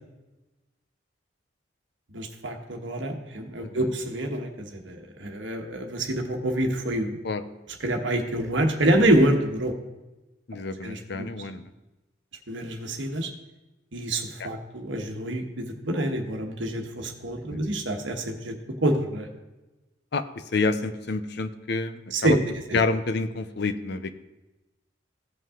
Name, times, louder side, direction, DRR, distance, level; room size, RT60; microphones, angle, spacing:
voice 1, 2.1-7.2 7.8-9.7 10.8-11.3 12.5-13.3 13.9-19.3 22.1-22.4 22.7-22.8, right 1 dB, 80° right, 3 dB, 1.2 m, -26 dB
voice 2, 10.5-11.7 14.4-14.5 17.5-17.7 20.1-20.3 20.5-22.4 22.7-24.1, left 3 dB, 60° left, 10 dB, 0.6 m, -28 dB
16.0 x 5.5 x 3.7 m, 1.1 s
head